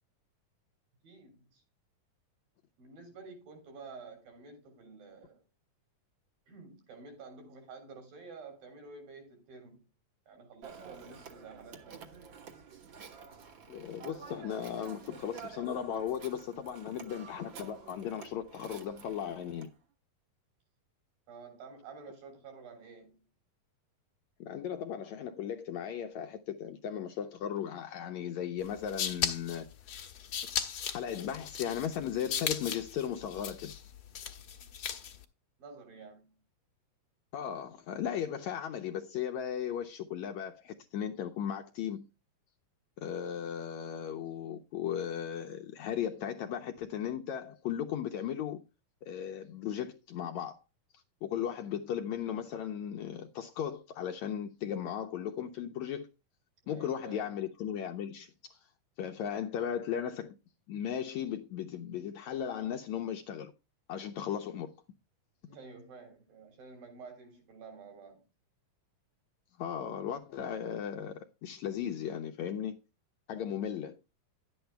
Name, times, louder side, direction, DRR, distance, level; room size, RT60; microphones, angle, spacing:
voice 1, 1.0-1.6 2.8-5.4 6.5-9.9 10.3-12.1 21.3-23.2 35.6-36.3 56.6-57.4 65.5-68.3, right 4 dB, 80° right, 4.9 m, -50 dB
Telephone, 10.6-19.7, right 6 dB, 55° right, 1.3 m, -50 dB
voice 2, 13.7-19.7 24.4-29.7 30.9-33.8 37.3-42.1 43.0-48.6 49.0-50.6 50.9-56.1 56.7-58.6 59.0-60.4 60.7-63.5 63.9-64.7 69.6-72.8 73.3-74.0, left 9 dB, 75° left, 1.7 m, -36 dB
sound 1, 28.6-35.2, left 8 dB, 60° left, 1.5 m, -37 dB
11.5 x 8.8 x 3.4 m
omnidirectional pair, 4.0 m